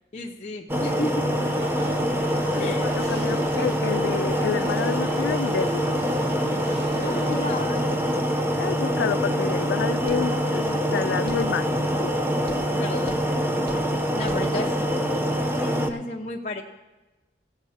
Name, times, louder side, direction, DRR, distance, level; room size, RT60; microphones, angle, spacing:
voice 1, 0.1-1.3 2.6-2.9 7.0-8.0 10.2-10.4 12.7-13.2 14.1-14.8 15.6-16.6, left 2 dB, 40° left, -1 dB, 0.7 m, -33 dB
sound 1, 0.7-15.9, equal, 15° right, 0.6 m, -25 dB
sound 2, 1.3-7.7, equal, 85° right, 2.1 m, -39 dB
voice 2, 2.5-6.0 8.6-12.1, left 7 dB, 85° left, 9 dB, 0.3 m, -29 dB
sound 3, 10.1-10.3 11.3-11.5 12.5-12.7 13.1-13.3 13.7-13.9 14.3-14.5, equal, 55° right, 1.0 m, -42 dB
17.0 x 7.2 x 4.3 m, 1.1 s
head